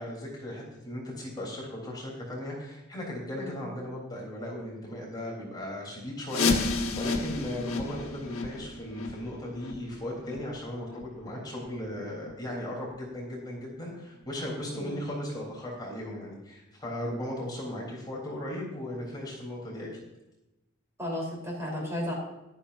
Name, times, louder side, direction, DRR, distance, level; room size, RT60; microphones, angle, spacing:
voice 1, 0.0-19.9, left 1 dB, 20° left, -3 dB, 3.7 m, -37 dB
sound 1, 6.3-11.9 12.2-12.3 12.9-13.0 13.6-13.7 14.2-14.3, left 3 dB, 80° left, 1.5 m, -32 dB
voice 2, 21.0-22.1, left 1 dB, 15° right, -3 dB, 3.8 m, -34 dB
14.0 x 12.5 x 2.7 m, 0.97 s
head